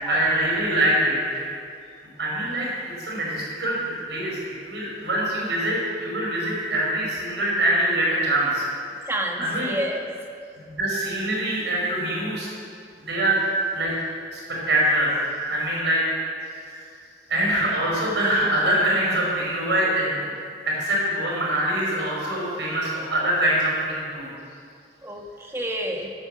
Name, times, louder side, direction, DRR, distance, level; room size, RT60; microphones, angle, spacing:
voice 1, 0.1-1.4 2.2-2.7 3.0-8.7 9.4-9.7 10.6-12.5 13.0-13.4 13.7-13.9 14.3-14.4 14.7-15.2 15.5-16.0 16.7-16.9 17.3-20.2 20.7-24.3, right 1 dB, 85° right, -4 dB, 5.2 m, -24 dB
voice 2, 9.1-10.1 25.0-26.1, right 1 dB, 15° right, 0 dB, 1.8 m, -29 dB
19.5 x 8.2 x 7.7 m, 2.3 s
head